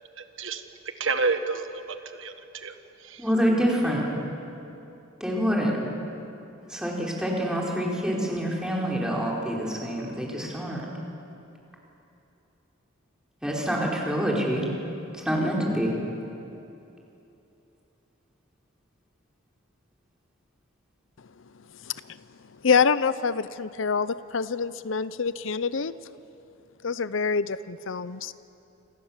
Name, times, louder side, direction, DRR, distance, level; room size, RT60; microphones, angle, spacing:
voice 1, 0.2-3.2, right 4 dB, 70° right, 7 dB, 1.4 m, -30 dB
voice 2, 3.2-4.2 5.2-5.8 6.7-10.9 13.4-14.6 15.1-15.9, equal, 5° right, -3 dB, 4.7 m, -26 dB
voice 3, 22.6-25.9 26.8-28.3, left 5 dB, 70° left, 15 dB, 0.6 m, -26 dB
28.5 x 27.0 x 7.4 m, 2.9 s
head